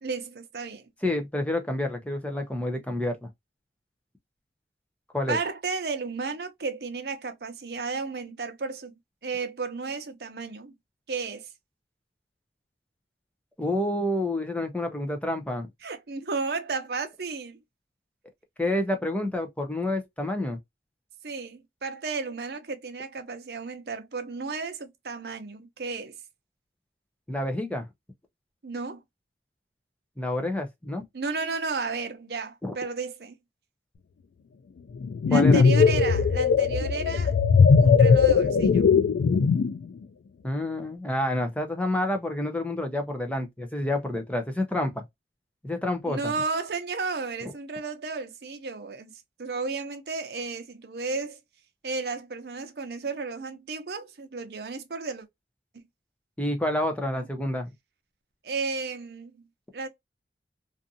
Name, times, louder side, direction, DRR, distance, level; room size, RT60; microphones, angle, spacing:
voice 1, 0.0-0.9 5.3-10.7 11.1-11.5 15.8-17.6 21.2-26.2 28.6-29.0 31.1-33.4 35.3-37.4 37.8-38.9 46.1-49.1 49.4-51.4 51.8-55.3 57.1-57.3 58.4-59.4 59.7-59.9, right 4 dB, 65° right, 0.6 m, -33 dB
voice 2, 1.0-3.3 5.1-5.4 13.6-15.7 18.6-20.6 27.3-27.9 30.2-31.0 32.6-32.7 35.3-35.6 40.4-45.0 45.6-46.3 56.4-57.7, left 1 dB, 10° left, 0.5 m, -28 dB
sound 1, 35.0-39.8, left 5 dB, 75° left, 0.3 m, -19 dB
2.6 x 2.5 x 2.6 m
head